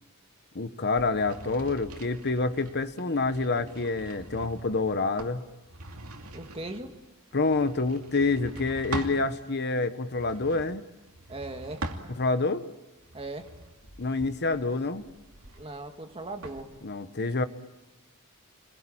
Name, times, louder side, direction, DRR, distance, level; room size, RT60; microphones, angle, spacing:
voice 1, 0.5-5.4 7.3-10.8 12.1-12.7 14.0-15.0 16.8-17.4, left 3 dB, 50° left, 11 dB, 1.2 m, -27 dB
sound 1, 0.9-9.2 10.0-12.5 13.0-16.6, right 2 dB, 75° right, 2.7 m, -43 dB
voice 2, 6.3-7.0 11.3-11.8 13.1-13.5 15.6-16.8, right 2 dB, 25° right, 5 dB, 2.0 m, -38 dB
29.0 x 22.5 x 8.9 m, 1.0 s
head